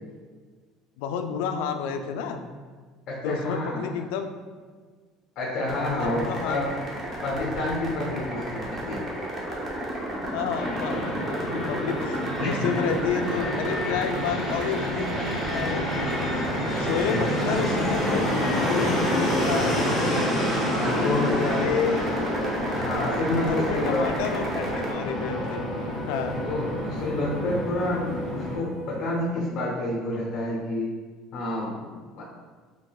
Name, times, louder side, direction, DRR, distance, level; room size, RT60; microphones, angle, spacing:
voice 1, 1.0-2.4 3.2-4.3 5.9-6.6 8.3-8.4 10.3-16.4 16.8-18.4 18.7-19.8 20.9-22.0 23.3-25.6 26.1-26.4, left 6 dB, 90° left, 7 dB, 0.3 m, -30 dB
voice 2, 3.1-3.9 5.4-6.7 7.2-9.0 12.4-12.7 17.1-17.2 20.7-21.7 22.8-24.1 24.5-24.6 26.4-30.9 31.3-32.2, left 2 dB, 40° left, -5 dB, 0.9 m, -29 dB
sound 1, 5.6-24.9, right 1 dB, 20° right, 0.8 m, -32 dB
Fixed-wing aircraft airplane, 10.6-28.6, left 1 dB, 5° left, 0.9 m, -29 dB
sound 2, 23.3-29.3, right 2 dB, 80° right, 1.3 m, -40 dB
5.0 x 3.3 x 2.3 m, 1.5 s
cardioid pair, 170°, 0 cm